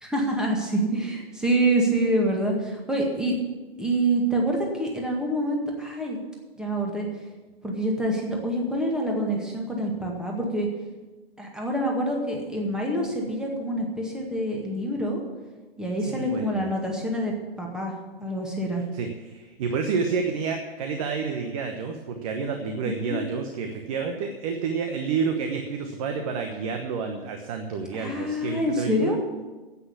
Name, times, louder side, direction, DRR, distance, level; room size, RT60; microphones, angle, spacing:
voice 1, 0.0-3.3 3.8-6.2 6.6-7.1 7.6-10.7 11.4-15.2 15.8-17.9 18.2-18.8 22.8-23.2 27.9-29.2, right 1 dB, ahead, -1 dB, 1.9 m, -26 dB
voice 2, 16.0-16.7 18.9-29.1, right 5 dB, 35° right, 5 dB, 1.2 m, -29 dB
9.8 x 8.6 x 8.3 m, 1.2 s
figure-of-eight pair, 125°, 30 cm